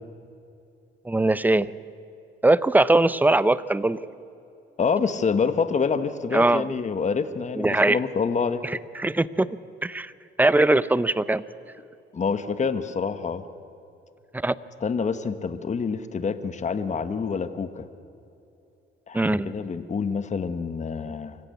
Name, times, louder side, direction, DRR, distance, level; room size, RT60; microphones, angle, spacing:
voice 1, 1.1-1.7 2.4-4.0 6.3-6.7 7.6-8.0 8.6-9.6 9.8-10.1 10.4-11.4 14.3-14.5 19.1-19.5, right 2 dB, 10° right, 17 dB, 0.7 m, -21 dB
voice 2, 4.8-8.6 12.1-13.4 14.8-17.8 19.1-21.4, left 5 dB, 35° left, 11 dB, 1.2 m, -27 dB
24.5 x 15.0 x 9.4 m, 2.8 s
cardioid pair, 90°, 20 cm